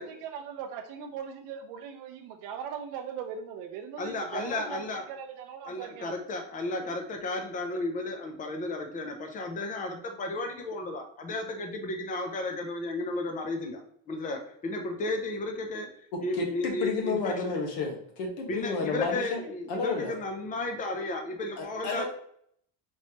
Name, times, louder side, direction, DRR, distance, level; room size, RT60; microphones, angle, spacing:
voice 1, 0.0-6.2, right 7 dB, 55° right, 4 dB, 0.5 m, -39 dB
voice 2, 4.0-5.0 5.6-13.8 14.1-15.9 16.2-17.5 18.5-22.1, left 2 dB, 20° left, 4 dB, 0.5 m, -33 dB
voice 3, 16.1-19.4 19.7-20.1 21.6-22.1, left 3 dB, 70° left, 2 dB, 1.3 m, -31 dB
4.4 x 3.1 x 2.8 m, 0.66 s
cardioid pair, 160°, 40 cm